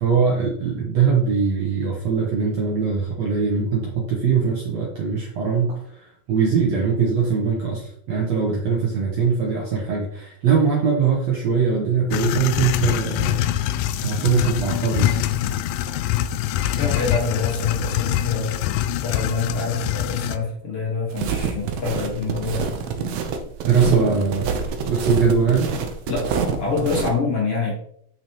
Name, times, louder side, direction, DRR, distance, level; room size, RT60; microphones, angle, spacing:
voice 1, 0.0-15.2 23.0-23.1 23.6-25.7, right 5 dB, 65° right, -2 dB, 1.8 m, -22 dB
sound 1, 12.1-20.4, left 12 dB, 80° left, 2.1 m, -24 dB
voice 2, 16.7-18.6 19.0-22.8 26.1-27.7, left 4 dB, 45° left, -3 dB, 2.3 m, -26 dB
sound 2, 21.1-27.1, right 6 dB, 90° right, 1.5 m, -26 dB
8.5 x 6.1 x 3.1 m, 0.66 s
omnidirectional pair, 4.3 m